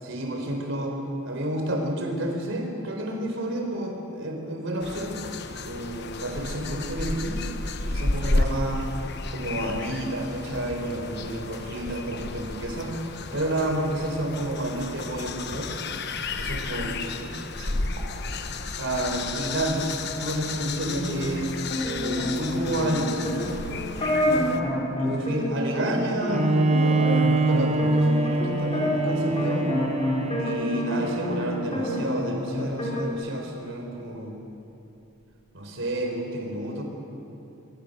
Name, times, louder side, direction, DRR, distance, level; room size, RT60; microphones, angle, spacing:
voice 1, 0.0-1.0 1.2-5.2 5.6-7.4 7.8-8.9 9.3-13.0 13.3-15.7 16.4-17.3 17.6-17.8 18.8-21.5 22.0-23.3 23.6-24.5 25.0-29.7 30.4-34.4 35.5-36.8, right 1 dB, 60° right, 2 dB, 4.2 m, -30 dB
sound 1, 4.8-24.6, left 3 dB, 50° left, 1.1 m, -32 dB
sound 2, 20.9-31.4 31.7-33.1, left 1 dB, 25° left, 3.7 m, -28 dB
Bowed string instrument, 26.3-32.0, right 2 dB, 30° right, 1.1 m, -25 dB
24.0 x 24.0 x 6.7 m, 2.8 s
head